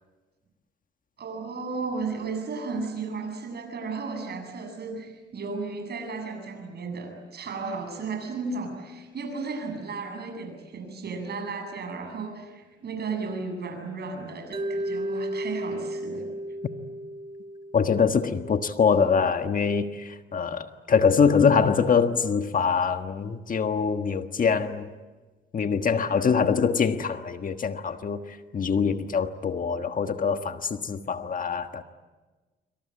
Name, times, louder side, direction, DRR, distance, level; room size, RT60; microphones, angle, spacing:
voice 1, 1.2-16.3, right 4 dB, 55° right, 5 dB, 7.9 m, -34 dB
Mallet percussion, 14.5-18.6, right 1 dB, 30° right, 2.6 m, -34 dB
voice 2, 17.7-24.9 25.5-31.8, left 6 dB, 45° left, 8 dB, 1.5 m, -24 dB
26.5 x 25.5 x 8.9 m, 1.3 s
cardioid pair, 90°, 20 cm